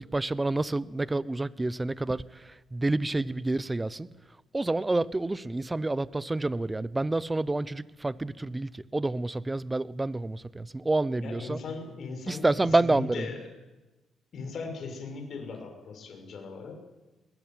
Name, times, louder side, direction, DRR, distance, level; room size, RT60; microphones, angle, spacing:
voice 1, 0.0-4.1 4.5-11.6 12.3-13.2, right 2 dB, 15° right, 18 dB, 0.9 m, -28 dB
voice 2, 11.2-13.5 14.3-16.8, left 4 dB, 55° left, 4 dB, 6.5 m, -39 dB
21.5 x 19.0 x 9.2 m, 1.1 s
cardioid pair, 90°, 0 cm